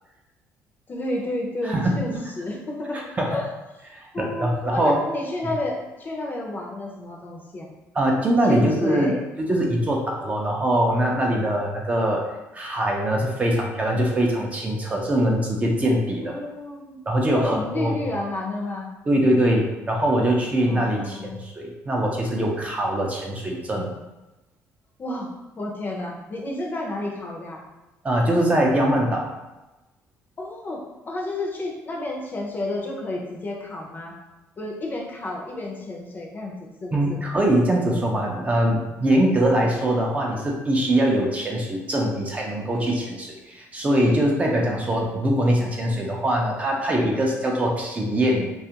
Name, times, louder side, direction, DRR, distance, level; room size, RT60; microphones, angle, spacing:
voice 1, 0.9-3.0 3.3-3.5 3.7-3.9 4.1-7.7 8.5-9.3 16.2-17.0 17.3-18.9 20.7-21.4 25.0-25.3 25.6-27.6 30.4-34.2 34.6-37.2 44.6-46.1, left 2 dB, 35° left, -1 dB, 0.6 m, -31 dB
voice 2, 1.6-2.0 3.2-3.4 3.9-5.0 7.9-12.2 12.5-16.4 17.1-17.9 19.1-23.9 28.0-29.2 36.9-48.6, right 1 dB, 25° right, -1 dB, 0.5 m, -22 dB
2.4 x 2.3 x 2.8 m, 1.1 s
cardioid pair, 105°, 6 cm